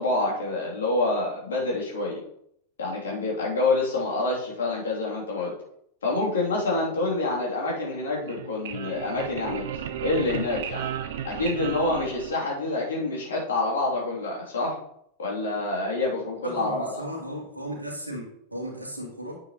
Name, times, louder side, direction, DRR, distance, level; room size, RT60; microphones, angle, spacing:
voice 1, 0.0-2.2 2.8-5.5 6.0-9.7 10.0-10.9 11.2-14.8 15.2-17.0, left 2 dB, 65° left, -4 dB, 3.1 m, -27 dB
sound 1, 8.1-12.8, right 9 dB, 55° right, 0.8 m, -35 dB
voice 2, 16.4-19.4, equal, 85° right, -1 dB, 2.4 m, -35 dB
9.1 x 8.7 x 3.1 m, 0.72 s
figure-of-eight pair, 90°, 0 cm